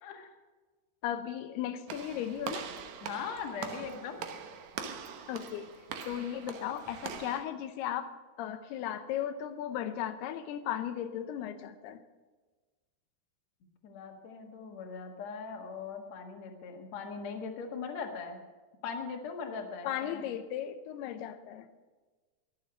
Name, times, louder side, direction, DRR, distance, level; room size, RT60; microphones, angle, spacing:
voice 1, 0.0-0.3 3.0-4.2 6.2-6.8 13.8-18.4 18.8-20.3, left 5 dB, 55° left, 3 dB, 2.5 m, -40 dB
voice 2, 1.0-2.7 5.3-5.7 6.0-8.1 8.4-12.0 19.8-21.7, left 10 dB, 90° left, 9 dB, 2.9 m, -36 dB
Walk footsteps / Slam, 1.9-7.4, right 7 dB, 65° right, 1.9 m, -42 dB
22.0 x 7.6 x 6.3 m, 1.3 s
omnidirectional pair, 4.5 m